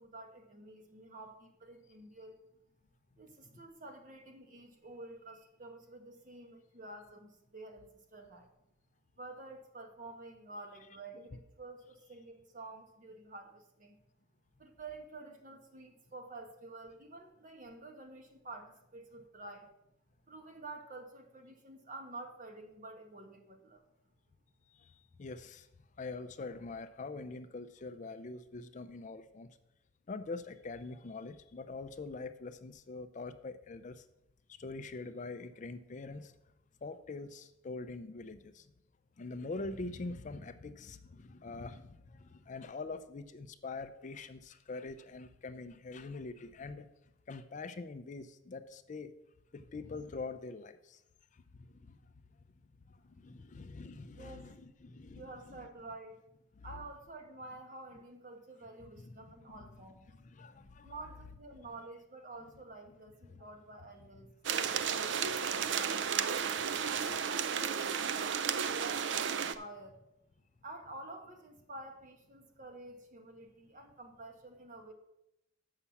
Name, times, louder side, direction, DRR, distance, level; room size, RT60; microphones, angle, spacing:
voice 1, 0.0-2.4 3.2-8.5 9.2-14.0 14.6-19.7 20.3-23.8 54.1-54.5 55.1-56.2 56.6-60.1 60.8-66.1 66.8-70.0 70.6-74.9, right 2 dB, 45° right, 5 dB, 1.2 m, -50 dB
voice 2, 24.7-25.7 26.0-29.5 30.1-34.1 34.6-36.3 36.8-38.7 39.2-46.9 47.3-49.1 49.5-51.0 51.3-52.0 52.9-55.7 56.6-56.7 59.0-59.1 60.1-60.9 63.3-63.4, left 3 dB, 40° left, 11 dB, 0.4 m, -44 dB
sound 1, 64.4-69.5, right 7 dB, 65° right, 0.5 m, -33 dB
7.0 x 5.7 x 7.0 m, 0.83 s
head